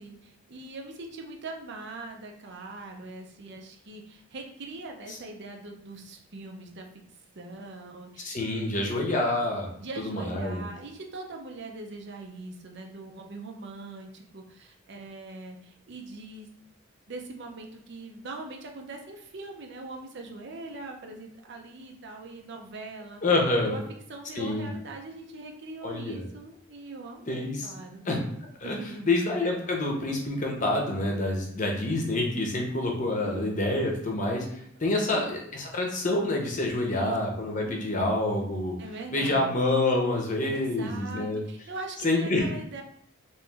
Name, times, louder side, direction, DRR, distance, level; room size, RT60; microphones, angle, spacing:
voice 1, 0.0-6.9 7.4-9.2 9.8-16.5 17.1-23.2 23.6-23.8 24.1-28.0 28.6-29.2 33.2-33.5 35.0-35.3 36.9-37.2 37.6-38.2 38.8-39.5 40.5-42.8, right 2 dB, 55° right, 2 dB, 0.6 m, -42 dB
voice 2, 8.2-9.7 10.0-10.6 23.2-23.8 24.4-24.7 25.8-26.2 27.3-27.7 28.1-28.2 28.6-28.8 29.0-34.5 34.8-38.8 39.1-41.4 42.0-42.5, left 2 dB, 40° left, 1 dB, 0.7 m, -27 dB
3.1 x 3.0 x 3.4 m, 0.67 s
head